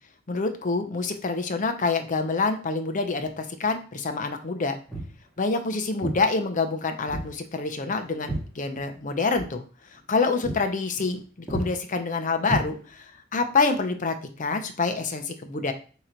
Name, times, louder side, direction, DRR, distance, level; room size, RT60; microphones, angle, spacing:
voice 1, 0.3-4.8 5.4-9.6 9.9-15.7, left 4 dB, 40° left, 7 dB, 0.6 m, -27 dB
Walk footsteps, 4.9-5.2 6.0-6.2 7.1-7.3 7.6-9.1 9.3-9.5 9.9-10.1 10.4-10.6 10.9-11.2 11.5-11.7 12.4-13.1, right 1 dB, 5° left, 1.5 m, -32 dB
3.8 x 2.9 x 4.4 m, 0.39 s
head